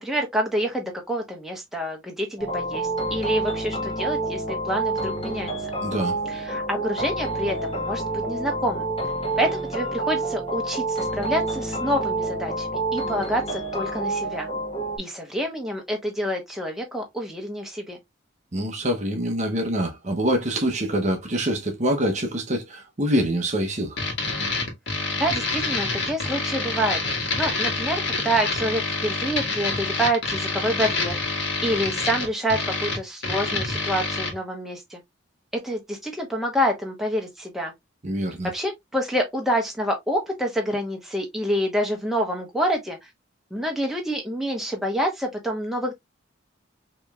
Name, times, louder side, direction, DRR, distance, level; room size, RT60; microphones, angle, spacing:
voice 1, 0.0-5.5 6.3-8.9 9.4-14.5 15.0-18.0 25.2-27.0 27.4-31.2 31.6-35.0 35.5-37.7 38.5-43.1 43.5-45.9, equal, ahead, 1.0 m, -27 dB
sound 1, 2.4-15.0, right 2 dB, 30° left, 1.3 m, -28 dB
voice 2, 5.8-6.2 18.5-24.0 38.0-38.5, equal, 35° right, 0.8 m, -25 dB
sound 2, 24.0-34.3, left 3 dB, 60° left, 1.6 m, -27 dB
4.9 x 3.0 x 2.3 m
head